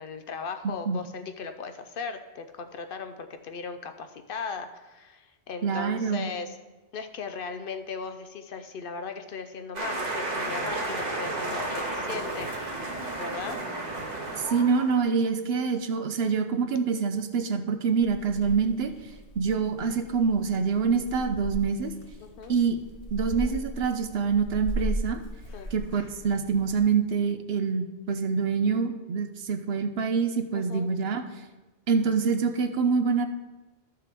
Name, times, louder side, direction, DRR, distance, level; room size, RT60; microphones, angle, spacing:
voice 1, 0.0-6.6 6.9-12.9 13.2-13.6 22.2-22.5 25.5-25.7 30.5-30.9, left 5 dB, 60° left, 8 dB, 0.7 m, -37 dB
voice 2, 5.6-6.3 14.4-18.9 19.4-21.9 22.5-22.8 23.1-25.2 25.7-31.2 31.9-33.3, right 5 dB, 70° right, 8 dB, 0.9 m, -26 dB
sound 1, 9.7-15.0, right 2 dB, 40° right, 1.3 m, -32 dB
Purr / Meow, 18.0-26.8, equal, 85° left, 1.3 m, -38 dB
12.5 x 6.6 x 3.5 m, 1.2 s
omnidirectional pair, 1.1 m